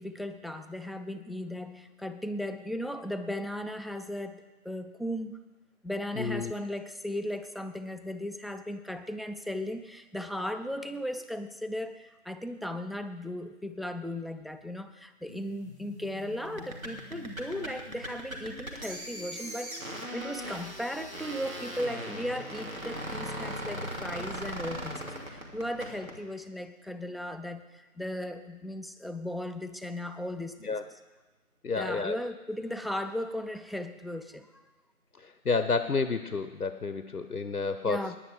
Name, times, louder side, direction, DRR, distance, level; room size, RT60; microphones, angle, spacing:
voice 1, 0.0-5.4 5.8-30.9 31.7-34.6 37.8-38.2, left 1 dB, ahead, 8 dB, 0.5 m, -36 dB
voice 2, 6.2-6.5 30.6-30.8 31.6-32.2 35.2-38.1, left 4 dB, 80° left, 10 dB, 0.8 m, -30 dB
sound 1, 15.3-25.3, equal, 45° right, 2.5 m, -49 dB
sound 2, 16.4-26.2, equal, 65° right, 2.5 m, -39 dB
10.0 x 9.8 x 8.0 m, 1.2 s
figure-of-eight pair, 180°, 45 cm